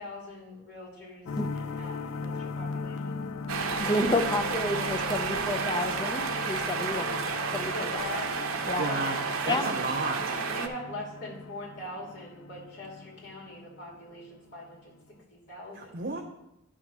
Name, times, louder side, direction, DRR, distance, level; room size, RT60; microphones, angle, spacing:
voice 1, 0.0-3.2 7.7-9.2 9.5-9.7 10.1-16.0, left 1 dB, 50° left, -4 dB, 2.9 m, -42 dB
sound 1, 1.3-14.0, left 4 dB, 75° left, 0.4 m, -39 dB
sound 2, 3.5-10.7, right 4 dB, 85° right, 0.8 m, -31 dB
voice 2, 3.8-7.2 7.5-8.0 8.7-8.9 9.4-9.7, left 1 dB, 20° left, 6 dB, 0.6 m, -30 dB
voice 3, 8.8-9.2 9.5-10.2 15.7-16.2, right 3 dB, 45° right, 1 dB, 0.7 m, -32 dB
10.5 x 3.7 x 6.1 m, 0.87 s
head